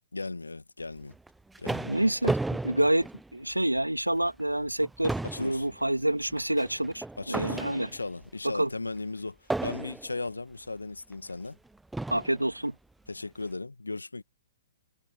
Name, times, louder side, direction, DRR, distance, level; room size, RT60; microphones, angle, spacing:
voice 1, 0.1-1.1 1.6-1.9 5.2-5.7 7.2-11.6 13.1-14.2, left 3 dB, 80° left, 2.1 m, -37 dB
sound 1, 1.1-3.8 4.2-4.4 4.7-8.2 9.5-10.3 11.1-11.2 11.9-12.5, right 2 dB, 5° right, 0.8 m, -34 dB
voice 2, 1.8-2.4 2.6-7.9 8.4-8.7 12.1-12.7, right 1 dB, 90° right, 2.3 m, -28 dB
figure-of-eight pair, 115°, 0 cm